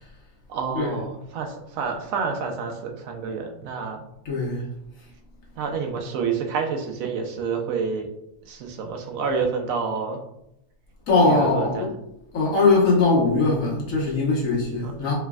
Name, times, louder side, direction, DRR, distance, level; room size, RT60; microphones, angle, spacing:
voice 1, 0.5-4.0 5.6-8.1 8.4-10.2 11.2-11.9 14.8-14.9, right 5 dB, 80° right, 3 dB, 1.1 m, -28 dB
voice 2, 4.2-4.6 11.1-11.9 12.3-15.2, left 3 dB, 75° left, -4 dB, 1.6 m, -20 dB
4.6 x 3.2 x 2.3 m, 0.81 s
omnidirectional pair, 1.4 m